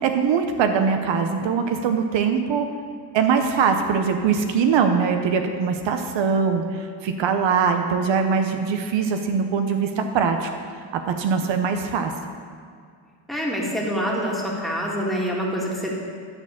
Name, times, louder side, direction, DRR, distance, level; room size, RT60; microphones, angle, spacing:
voice 1, 0.0-2.7 3.1-10.5 10.9-12.1, right 6 dB, 70° right, 6 dB, 0.8 m, -22 dB
voice 2, 13.3-15.9, equal, ahead, -3 dB, 2.0 m, -26 dB
10.5 x 4.2 x 7.2 m, 2.1 s
cardioid pair, 85°, 46 cm